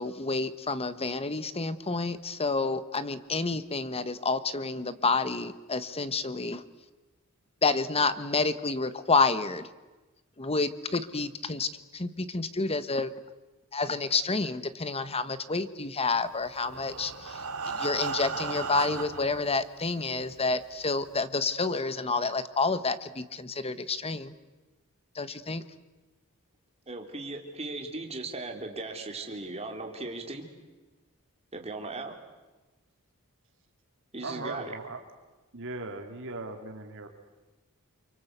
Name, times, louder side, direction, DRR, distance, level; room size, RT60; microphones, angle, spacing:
voice 1, 0.0-6.6 7.6-9.7 10.4-13.1 13.7-24.3 25.1-25.6, left 3 dB, 25° left, 13 dB, 1.3 m, -29 dB
Breathing, 16.5-19.4 20.2-20.3 20.6-20.7 21.2-21.3, right 4 dB, 80° right, 2.3 m, -35 dB
voice 2, 26.9-30.4 31.5-32.1 34.1-34.7, right 2 dB, 30° right, 3 dB, 3.7 m, -37 dB
voice 3, 34.2-35.0 35.5-37.1, right 2 dB, 60° right, 5 dB, 2.9 m, -38 dB
30.0 x 24.0 x 8.2 m, 1.2 s
head